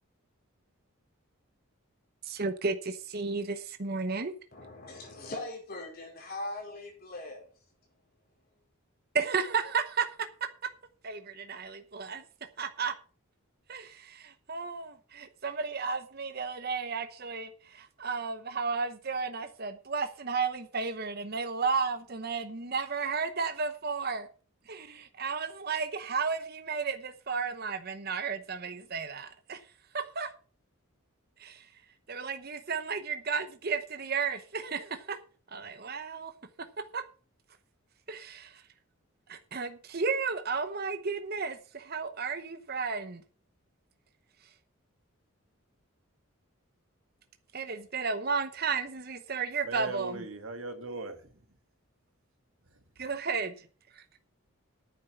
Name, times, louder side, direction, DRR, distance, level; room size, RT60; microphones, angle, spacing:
voice 1, 2.3-4.3 9.1-10.1 11.0-12.2 12.6-12.9 13.7-24.3 24.7-29.6 29.9-30.3 31.4-31.6 32.1-35.2 35.5-36.3 36.9-37.0 38.1-38.5 39.3-43.2 47.5-50.2 53.0-53.5, right 5 dB, 45° right, 0.9 m, -33 dB
voice 2, 4.5-7.5, left 2 dB, 45° left, 4.8 m, -40 dB
voice 3, 49.6-51.4, right 2 dB, 70° right, 2.0 m, -39 dB
9.6 x 7.5 x 6.7 m
head